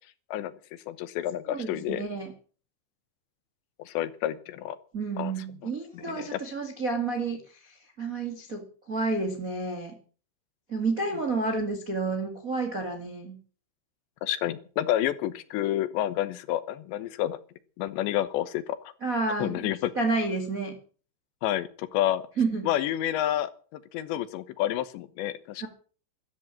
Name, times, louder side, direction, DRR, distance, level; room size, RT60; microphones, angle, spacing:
voice 1, 0.9-2.0 3.8-4.8 5.2-5.3 5.6-6.4 14.2-17.4 17.8-18.9 19.4-19.9 21.4-22.2 22.6-25.7, left 12 dB, 75° left, 14 dB, 3.0 m, -29 dB
voice 2, 1.5-2.3 4.9-10.0 10.7-13.4 19.0-19.7 19.9-20.8 22.4-22.7 25.6-25.7, right 3 dB, 45° right, 4 dB, 1.1 m, -30 dB
14.0 x 13.5 x 7.5 m, 0.41 s
omnidirectional pair, 5.8 m